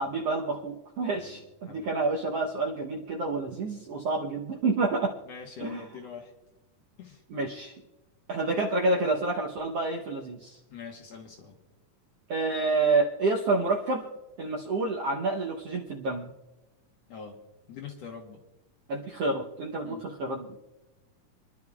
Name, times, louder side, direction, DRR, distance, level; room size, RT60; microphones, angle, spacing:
voice 1, 0.0-5.1 5.6-5.8 7.3-7.7 8.3-10.6 12.3-14.1 14.4-16.3 18.9-20.7, right 3 dB, 65° right, -1 dB, 1.5 m, -28 dB
voice 2, 1.1-1.9 5.3-6.3 7.0-7.2 10.7-11.6 17.1-17.4 17.7-18.4 19.8-20.0, left 6 dB, 60° left, 2 dB, 2.0 m, -44 dB
28.0 x 11.5 x 2.4 m, 1.0 s
omnidirectional pair, 3.9 m